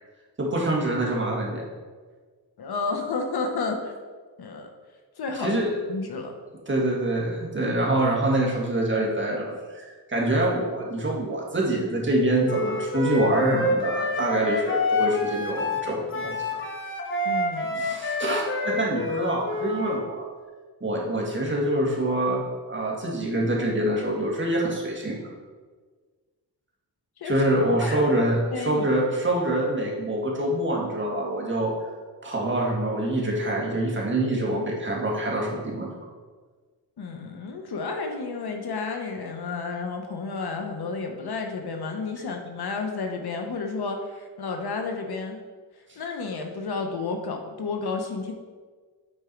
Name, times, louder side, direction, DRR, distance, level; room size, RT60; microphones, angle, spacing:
voice 1, 0.4-1.7 5.4-5.7 6.7-16.6 17.8-20.3 20.8-25.3 27.2-31.7 32.2-35.9, right 1 dB, 30° right, -2 dB, 2.0 m, -25 dB
voice 2, 2.6-3.9 4.4-4.7 5.2-5.6 5.9-6.3 17.2-17.9 27.2-27.3 27.8-28.0 28.5-28.9 37.0-45.4 46.0-48.3, left 4 dB, 65° left, 4 dB, 1.1 m, -31 dB
Wind instrument woodwind instrument, 12.5-20.0, left 2 dB, 30° left, 1.3 m, -28 dB
8.9 x 4.7 x 4.6 m, 1.5 s
cardioid pair, 95°, 41 cm